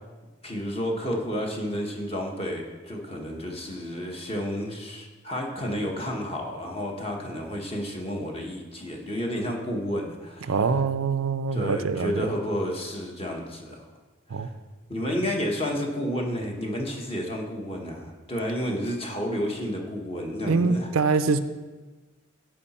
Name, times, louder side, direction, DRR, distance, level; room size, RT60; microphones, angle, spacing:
voice 1, 0.4-10.6 11.5-13.9 14.3-14.5 14.9-20.9, equal, 25° left, 0 dB, 1.2 m, -31 dB
voice 2, 10.5-12.3 14.3-14.5 20.5-21.4, right 4 dB, 75° right, 11 dB, 0.5 m, -24 dB
14.0 x 4.9 x 4.3 m, 1.3 s
head